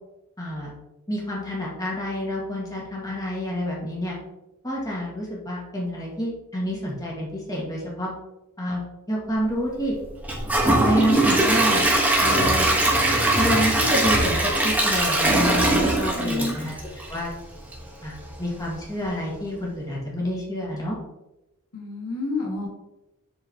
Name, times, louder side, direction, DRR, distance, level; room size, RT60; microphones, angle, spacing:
voice 1, 0.4-0.7 1.1-4.2 4.6-8.1 8.6-8.8 9.1-9.9 10.7-11.9 12.2-12.7 13.3-16.8 17.1-17.3 18.0-21.0, equal, 15° left, -5 dB, 1.9 m, -28 dB
Gurgling / Toilet flush / Trickle dribble, 10.2-17.3 17.7-17.8 18.3-18.4, right 1 dB, 5° right, 1.1 m, -21 dB
voice 2, 16.1-16.6 21.7-22.7, left 2 dB, 80° left, -1 dB, 1.7 m, -29 dB
7.4 x 4.6 x 2.9 m, 0.95 s
head